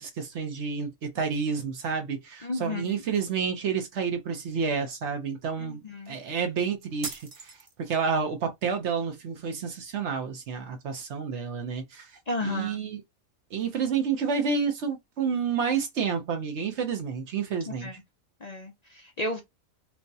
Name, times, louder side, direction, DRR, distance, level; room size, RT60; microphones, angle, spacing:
voice 1, 0.0-12.1 12.4-13.0 13.5-17.9, right 6 dB, 60° right, 0.9 m, -30 dB
voice 2, 2.4-3.0 5.6-6.2 12.3-12.8 17.8-17.9 18.4-19.4, left 2 dB, 45° left, 0.5 m, -33 dB
sound 1, 7.0-8.0, right 4 dB, 35° right, 0.5 m, -39 dB
4.5 x 2.1 x 2.7 m
omnidirectional pair, 1.5 m